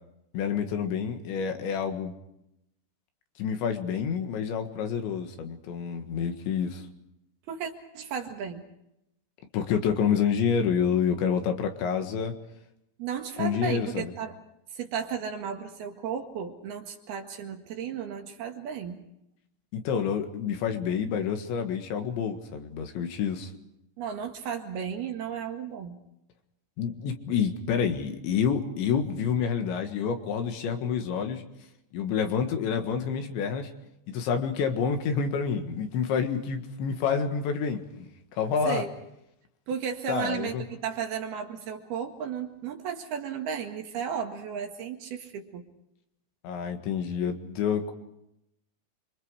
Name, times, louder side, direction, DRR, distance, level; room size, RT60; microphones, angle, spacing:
voice 1, 0.3-2.1 3.4-6.8 9.5-12.3 13.4-14.1 19.7-23.5 26.8-31.4 31.9-33.7 34.1-38.8 40.1-40.6 46.4-47.9, left 7 dB, 75° left, 6 dB, 4.0 m, -28 dB
voice 2, 7.5-8.6 13.0-14.4 14.7-19.0 24.0-26.0 38.7-38.9 39.7-45.7, right 7 dB, 65° right, 3 dB, 3.4 m, -34 dB
29.5 x 24.5 x 4.9 m, 0.83 s
omnidirectional pair, 5.3 m